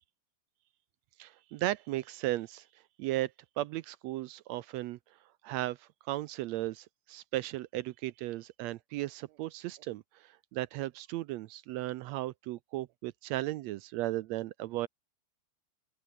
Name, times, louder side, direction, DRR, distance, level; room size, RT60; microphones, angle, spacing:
voice 1, 1.2-2.7 3.0-5.0 5.4-14.9, right 16 dB, 80° right, 1.7 m, -36 dB
open air
omnidirectional pair, 3.5 m